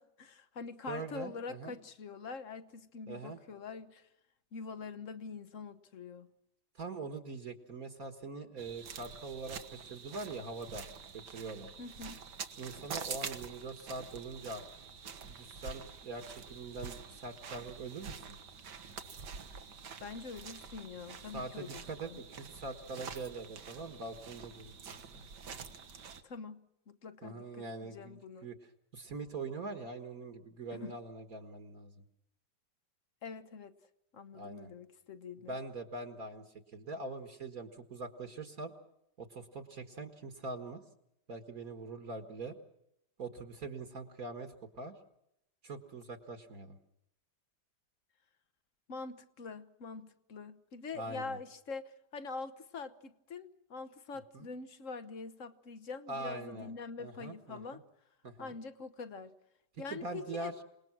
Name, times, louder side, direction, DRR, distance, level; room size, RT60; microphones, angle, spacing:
voice 1, 0.0-4.1 4.5-6.3 11.8-12.2 20.0-22.2 26.2-28.5 30.7-31.0 33.2-33.7 34.1-35.6 48.9-57.8 58.4-59.3 59.8-60.5, left 4 dB, 50° left, 1.4 m, -45 dB
voice 2, 0.9-1.8 3.1-3.4 6.8-10.9 11.3-11.7 12.6-14.6 15.2-18.4 21.3-25.3 27.2-28.6 28.9-32.0 34.3-34.7 35.5-38.7 39.2-40.8 41.3-42.6 43.2-44.9 45.6-46.8 50.9-51.4 54.3-54.5 56.1-56.7 57.0-57.8 58.2-58.6 59.9-60.5, right 3 dB, 60° right, 2.1 m, -43 dB
sound 1, 8.6-26.2, right 6 dB, 85° right, 2.0 m, -47 dB
27.5 x 19.5 x 6.2 m
omnidirectional pair, 1.8 m